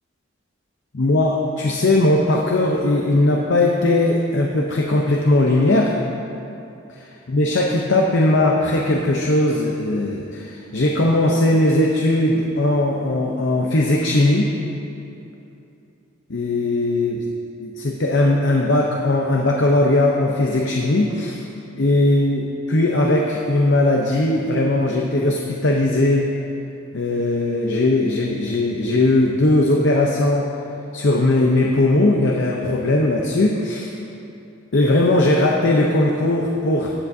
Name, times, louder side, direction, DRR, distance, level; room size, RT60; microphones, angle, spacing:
voice 1, 0.9-6.0 7.3-14.5 16.3-17.2 17.6-21.4 21.8-26.3 26.9-30.5 30.9-33.9 34.7-36.9, left 2 dB, 60° left, 0 dB, 0.7 m, -19 dB
16.0 x 9.9 x 2.7 m, 2.7 s
head